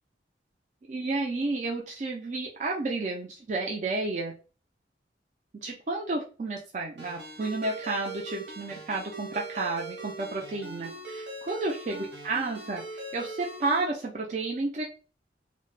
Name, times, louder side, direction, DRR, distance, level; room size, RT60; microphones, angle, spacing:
voice 1, 0.9-4.3 5.6-14.8, right 3 dB, 40° right, -2 dB, 0.4 m, -31 dB
Ringtone, 7.0-13.8, right 2 dB, 85° right, 1.0 m, -40 dB
2.1 x 2.0 x 3.1 m, 0.35 s
head